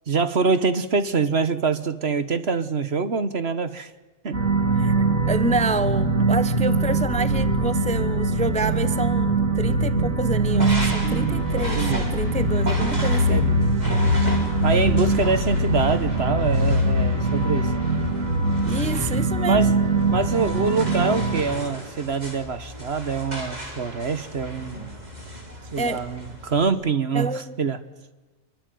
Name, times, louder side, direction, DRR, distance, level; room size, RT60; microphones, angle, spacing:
voice 1, 0.1-3.9 4.2-4.4 11.0-11.5 11.7-12.0 13.3-13.6 14.6-17.7 19.4-19.7 20.1-24.9 25.7-27.8, right 4 dB, 50° right, 12 dB, 1.4 m, -25 dB
sound 1, 4.3-21.4, right 2 dB, 65° right, 3.9 m, -22 dB
voice 2, 4.7-13.5 18.7-19.7 25.8-26.0 27.1-27.6, right 1 dB, 5° left, 13 dB, 0.8 m, -28 dB
sound 2, 10.4-26.7, right 1 dB, 30° right, 4.3 m, -36 dB
26.5 x 23.0 x 9.4 m, 1.2 s
omnidirectional pair, 1.5 m